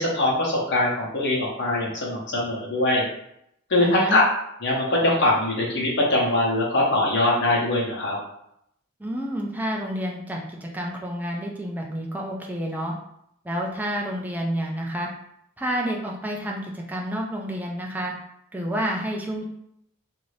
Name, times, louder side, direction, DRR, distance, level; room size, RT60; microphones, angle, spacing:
voice 1, 0.0-3.1 3.7-4.2 4.6-8.2, left 1 dB, 55° left, -4 dB, 0.9 m, -22 dB
voice 2, 3.8-4.2 9.0-12.9 13.4-15.1 15.6-18.1 18.5-19.4, equal, 10° right, -1 dB, 0.4 m, -29 dB
2.6 x 2.6 x 3.1 m, 0.76 s
head